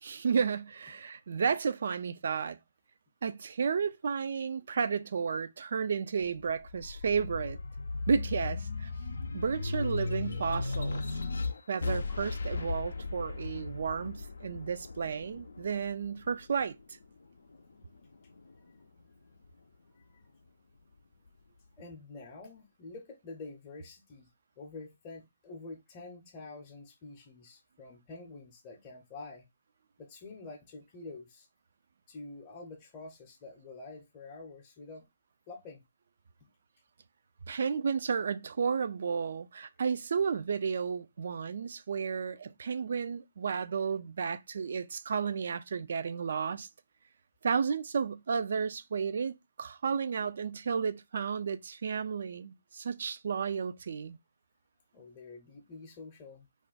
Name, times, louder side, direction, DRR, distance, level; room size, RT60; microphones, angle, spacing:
voice 1, 0.0-2.6 3.2-7.6 8.1-8.9 9.3-11.0 11.7-16.8 37.5-46.7 47.4-54.2, right 6 dB, 60° right, 0.3 m, -32 dB
sound 1, 6.2-17.0 17.5-18.7, left 3 dB, 75° left, 0.4 m, -36 dB
voice 2, 19.9-20.2 21.8-24.3 24.6-29.5 30.0-31.5 32.1-35.1 35.5-35.8 54.9-56.5, left 3 dB, 25° left, 0.7 m, -47 dB
2.4 x 2.2 x 3.9 m
figure-of-eight pair, 145°, 0 cm